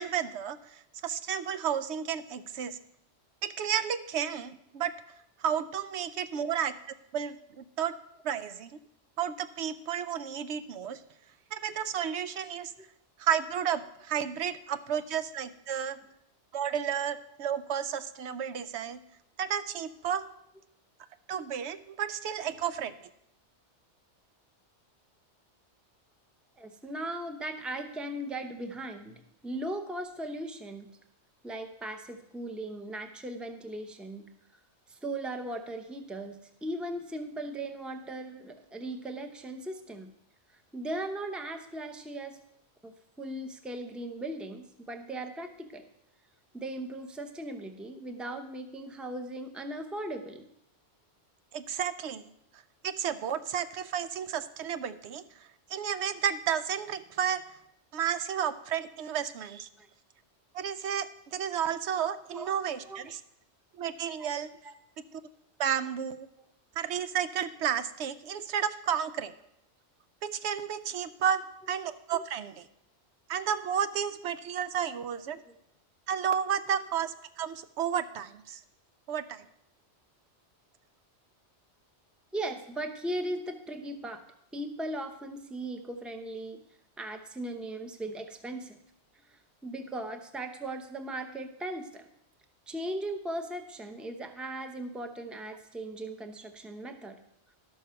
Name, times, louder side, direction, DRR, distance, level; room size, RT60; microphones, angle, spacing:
voice 1, 0.0-2.8 3.4-4.9 5.4-6.7 7.1-7.9 8.2-8.7 9.2-11.0 11.5-12.7 13.2-16.0 16.5-19.0 19.4-20.3 21.3-22.9 51.5-52.3 52.8-55.2 55.7-57.4 57.9-59.7 60.5-63.2 63.8-64.5 65.1-65.2 65.6-66.3 66.8-69.3 70.2-72.7 73.3-75.4 76.1-78.6 79.1-79.4, right 8 dB, 75° right, 12 dB, 0.9 m, -32 dB
voice 2, 26.6-30.9 31.4-34.2 34.9-40.1 40.7-42.4 42.8-45.8 46.5-50.5 59.8-59.9 62.3-62.5 62.9-63.1 64.2-64.3 64.6-64.7 72.1-72.2 82.3-84.2 84.5-86.6 87.0-88.8 89.3-92.1 92.7-97.2, right 1 dB, ahead, 6 dB, 0.6 m, -38 dB
12.0 x 6.4 x 5.6 m, 0.76 s
omnidirectional pair, 1.2 m